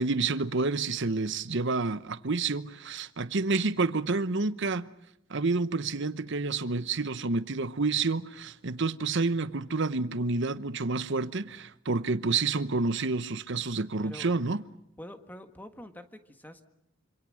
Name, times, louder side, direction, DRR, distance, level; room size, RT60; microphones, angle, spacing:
voice 1, 0.0-4.9 5.3-14.6, right 3 dB, 60° right, 1.0 m, -29 dB
voice 2, 15.0-16.6, left 1 dB, 10° left, 1.5 m, -45 dB
26.5 x 26.5 x 6.4 m
head